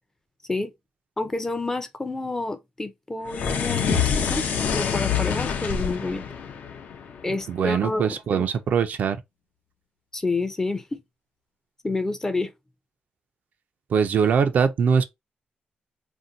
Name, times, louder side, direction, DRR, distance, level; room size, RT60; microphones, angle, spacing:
voice 1, 1.2-4.5 4.7-6.2 7.2-8.5 10.1-11.0 11.8-12.5, left 2 dB, 15° left, 0.5 m, -29 dB
sound 1, 3.3-7.7, left 7 dB, 65° left, 0.5 m, -27 dB
sound 2, 3.9-7.9, left 8 dB, 80° left, 1.0 m, -33 dB
voice 2, 7.3-9.2 13.9-15.0, right 6 dB, 60° right, 0.4 m, -22 dB
2.6 x 2.1 x 3.8 m
wide cardioid pair, 140°, 3 cm